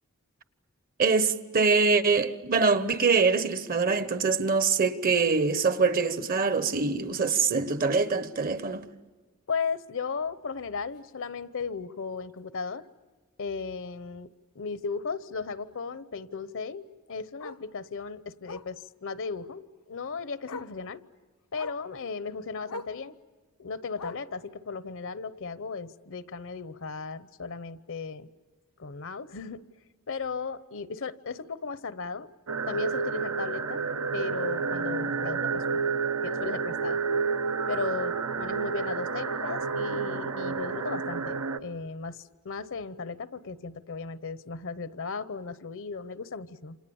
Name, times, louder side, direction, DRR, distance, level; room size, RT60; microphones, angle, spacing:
voice 1, 1.0-8.9, right 4 dB, 40° right, 1.1 m, -24 dB
voice 2, 9.5-12.8 13.4-14.3 14.5-21.0 21.5-23.1 23.6-28.3 28.8-29.6 30.1-32.3 32.6-33.8 34.1-35.6 36.2-37.0 37.7-46.8, left 5 dB, 60° left, 0.9 m, -36 dB
Bark, 10.9-11.1 11.5-11.6 12.0-12.1 12.4-12.5 13.9-14.0 16.5-16.6 17.4-17.7 18.4-18.8 19.9-20.0 20.5-20.8 21.5-21.9 22.7-23.0 23.9-24.4 25.4-25.5, left 3 dB, 90° left, 0.9 m, -41 dB
sound 1, 32.5-41.6, right 5 dB, 80° right, 1.1 m, -30 dB
29.0 x 26.5 x 7.1 m
head